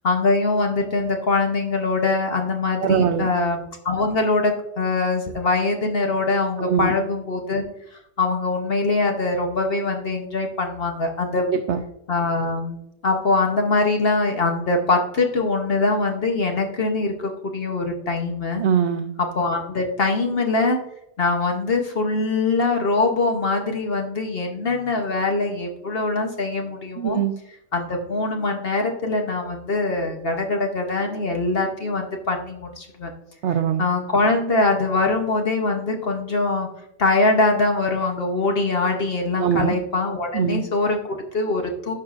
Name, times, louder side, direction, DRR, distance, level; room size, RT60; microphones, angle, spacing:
voice 1, 0.0-7.6 8.2-11.5 12.1-18.6 19.2-20.8 21.2-27.2 27.7-33.1 33.8-36.7 37.0-41.9, left 3 dB, 45° left, 3 dB, 0.8 m, -23 dB
voice 2, 2.8-3.3 6.6-6.9 11.4-11.8 18.6-19.1 27.0-27.3 33.4-33.9 39.4-39.7 40.3-40.6, right 7 dB, 85° right, 7 dB, 0.6 m, -22 dB
12.0 x 4.8 x 2.4 m, 0.80 s
omnidirectional pair, 1.7 m